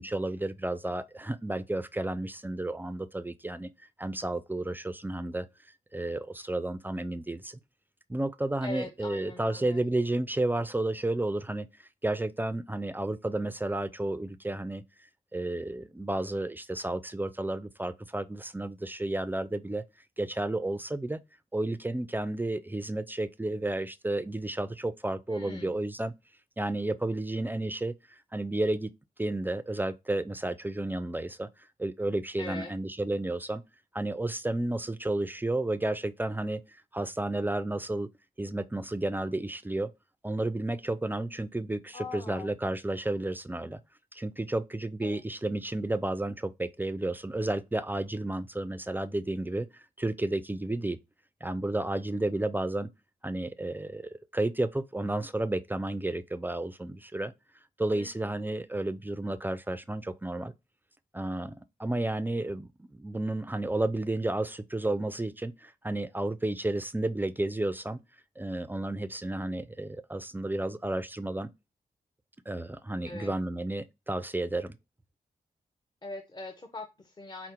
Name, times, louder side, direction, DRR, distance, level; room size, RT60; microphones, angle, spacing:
voice 1, 0.0-3.7 4.0-5.5 5.9-7.6 8.1-11.7 12.0-14.8 15.3-19.8 20.2-21.2 21.5-26.1 26.6-28.9 29.2-31.5 31.8-33.6 33.9-38.1 38.4-39.9 40.2-43.8 44.1-51.0 51.4-52.9 53.2-57.3 57.8-60.5 61.1-68.0 68.4-71.5 72.5-74.8, right 2 dB, 10° right, 0.3 m, -32 dB
voice 2, 8.6-9.8 25.3-25.7 32.4-32.7 41.9-42.5 45.0-45.2 57.9-58.1 73.0-73.3 76.0-77.5, left 2 dB, 25° left, 0.6 m, -41 dB
4.9 x 2.0 x 4.3 m
cardioid pair, 85°, 16 cm